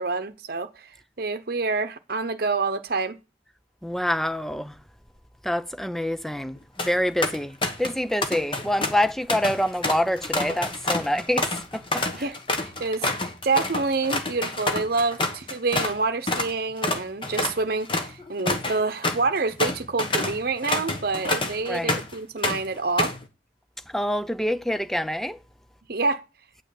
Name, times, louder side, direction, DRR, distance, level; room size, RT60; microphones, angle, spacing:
voice 1, 0.0-3.2 12.1-23.2 25.9-26.2, right 3 dB, 55° right, 0.9 m, -27 dB
voice 2, 3.8-4.8 5.4-12.2 21.7-22.0 23.9-25.4, left 1 dB, ahead, 0.5 m, -26 dB
sound 1, 6.6-6.9 7.2-8.0 8.2-16.0 16.3-16.5 16.8-22.2 22.4-23.2, left 2 dB, 30° left, 1.4 m, -28 dB
9.0 x 6.3 x 8.4 m
head